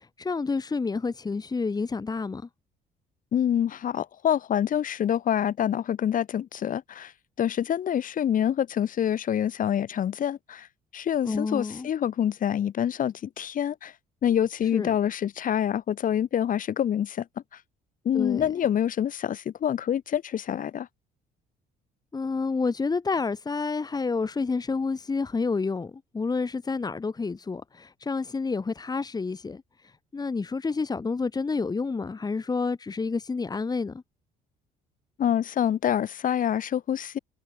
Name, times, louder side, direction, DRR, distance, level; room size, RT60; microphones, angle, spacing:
voice 1, 0.0-2.5 11.2-11.9 14.7-15.0 18.1-18.5 22.1-34.0, left 4 dB, 25° left, 3.2 m, -29 dB
voice 2, 3.3-7.1 7.4-10.7 10.9-13.9 14.2-17.3 18.1-20.9 35.2-37.2, left 9 dB, 55° left, 7.1 m, -26 dB
cardioid pair, 110°, 17 cm